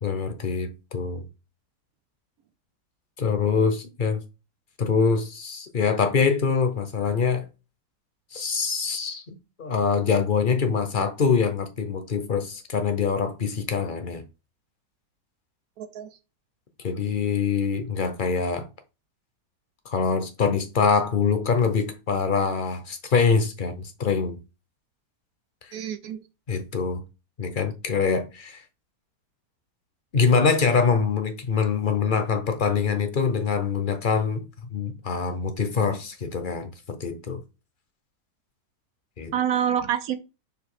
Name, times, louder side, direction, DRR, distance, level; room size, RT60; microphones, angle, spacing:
voice 1, 0.0-1.2 3.2-4.2 4.8-7.5 8.3-14.2 16.8-18.7 19.8-24.4 26.5-27.0 27.4-28.6 30.1-34.4 34.7-37.4 39.2-39.3, left 5 dB, 40° left, 0.8 m, -24 dB
voice 2, 15.8-16.1 25.7-26.2 39.3-40.2, right 9 dB, 65° right, 1.1 m, -27 dB
7.0 x 2.8 x 4.9 m
omnidirectional pair, 1.8 m